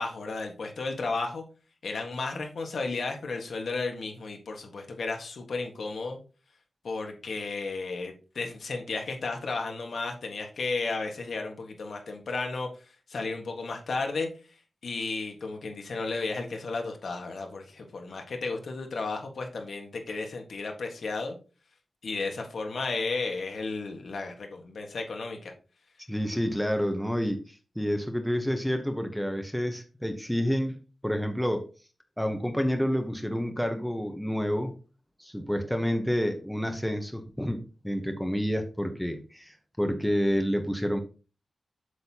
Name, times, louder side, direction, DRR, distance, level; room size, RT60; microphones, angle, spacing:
voice 1, 0.0-1.4 1.8-6.2 6.8-14.3 14.8-21.4 22.0-25.5, left 3 dB, 70° left, 3 dB, 1.6 m, -33 dB
voice 2, 26.1-27.4 27.8-30.8 31.0-31.6 32.2-34.7 35.2-41.0, equal, ahead, 6 dB, 1.0 m, -29 dB
7.9 x 6.6 x 2.9 m, 0.35 s
wide cardioid pair, 110°, 0 cm